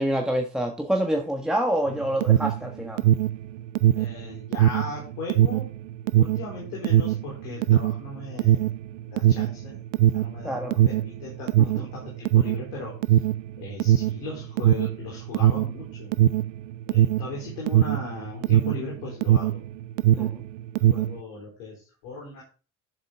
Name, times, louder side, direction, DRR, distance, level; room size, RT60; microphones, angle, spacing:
voice 1, 0.0-3.0 10.4-10.7 20.2-20.4, right 1 dB, ahead, 1.6 m, -26 dB
Alarm, 1.9-19.7 19.9-21.2, right 12 dB, 70° right, 0.5 m, -21 dB
voice 2, 3.9-5.7 6.2-8.7 9.0-9.8 10.1-13.2 13.6-16.2 16.9-19.6 20.1-20.3 20.9-22.4, left 3 dB, 65° left, 4.2 m, -38 dB
10.5 x 7.6 x 3.8 m
figure-of-eight pair, 50°, 39 cm